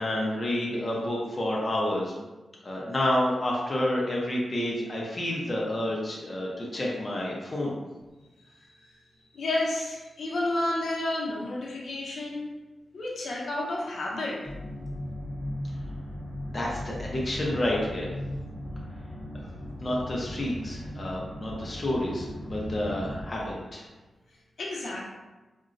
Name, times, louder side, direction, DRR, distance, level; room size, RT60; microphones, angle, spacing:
voice 1, 0.0-2.1 2.6-7.7 16.5-18.1 19.8-23.8, left 1 dB, 25° left, -4 dB, 0.5 m, -29 dB
voice 2, 9.3-12.5 12.9-14.4 24.6-25.0, left 2 dB, 70° left, -4 dB, 0.7 m, -31 dB
sound 1, 14.4-23.2, equal, 10° left, 1.0 m, -37 dB
3.8 x 2.1 x 2.5 m, 1.2 s
wide cardioid pair, 140°, 0 cm